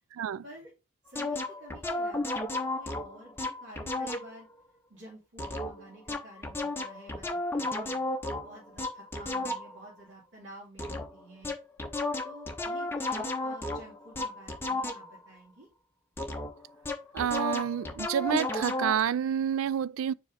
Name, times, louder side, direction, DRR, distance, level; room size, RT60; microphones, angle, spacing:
voice 1, 1.0-4.5 4.9-8.0 8.4-11.5 12.2-15.7, right 1 dB, 60° right, 2.6 m, -50 dB
sound 1, 1.1-4.4 5.4-9.9 10.8-11.2 11.4-15.3 16.2-19.0, left 2 dB, 10° left, 0.7 m, -33 dB
voice 2, 17.1-20.1, right 8 dB, 80° right, 0.3 m, -29 dB
4.8 x 4.2 x 4.9 m
head